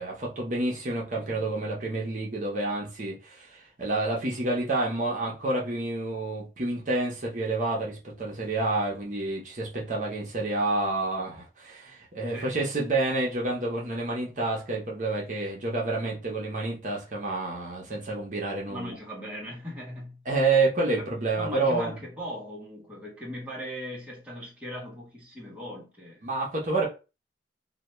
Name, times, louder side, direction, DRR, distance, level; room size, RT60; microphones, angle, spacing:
voice 1, 0.0-18.9 20.3-22.0 26.2-26.9, right 2 dB, 45° right, 0.6 m, -29 dB
voice 2, 18.7-20.2 21.0-21.1 21.4-26.2, equal, 5° right, 0.7 m, -39 dB
2.1 x 2.1 x 2.9 m
head